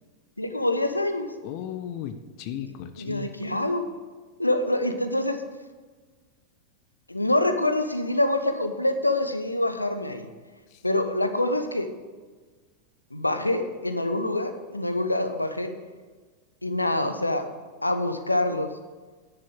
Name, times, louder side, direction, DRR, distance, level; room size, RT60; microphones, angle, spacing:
voice 1, 0.4-1.3 3.0-3.8 4.4-5.4 7.1-10.3 10.8-11.9 13.1-15.7 16.6-17.5 17.8-18.7, left 1 dB, 85° left, 8 dB, 0.9 m, -25 dB
voice 2, 1.4-3.3 10.7-10.8, left 10 dB, 45° left, 9 dB, 0.7 m, -36 dB
10.5 x 7.0 x 8.0 m, 1.4 s
figure-of-eight pair, 90°, 0 cm